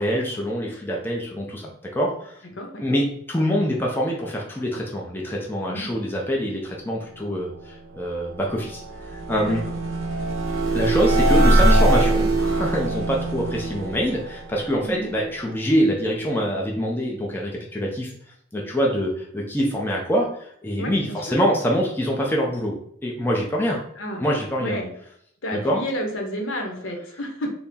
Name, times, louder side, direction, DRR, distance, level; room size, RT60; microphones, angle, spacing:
voice 1, 0.0-2.4 2.8-8.8 9.1-9.6 10.7-18.1 18.5-23.8 24.2-24.8 25.5-25.8, equal, 10° left, -2 dB, 0.4 m, -25 dB
sound 1, 8.0-15.2, right 1 dB, 70° right, 0.7 m, -22 dB
voice 2, 20.8-21.2 24.0-24.2 24.6-24.9 25.4-27.5, equal, 65° left, 2 dB, 0.8 m, -30 dB
4.1 x 2.0 x 3.5 m, 0.69 s
head